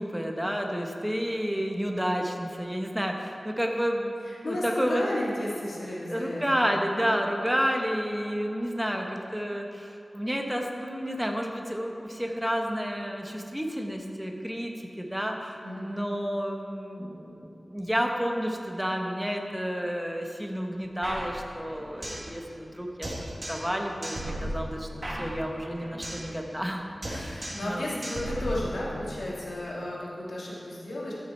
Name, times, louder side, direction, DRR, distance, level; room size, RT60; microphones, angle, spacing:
voice 1, 0.0-4.1 4.4-5.0 6.1-23.1 23.5-27.9, equal, 5° right, 2 dB, 1.2 m, -30 dB
voice 2, 4.3-6.7 15.6-15.9 27.1-31.1, left 1 dB, 80° left, -6 dB, 2.4 m, -33 dB
sound 1, 21.0-22.3 22.6-22.7 23.0-23.7 24.0-26.3 26.6-26.8 27.0-27.7 28.0-29.0, right 1 dB, 40° right, 2.2 m, -36 dB
13.5 x 6.6 x 4.4 m, 2.9 s
wide cardioid pair, 70°, 0 cm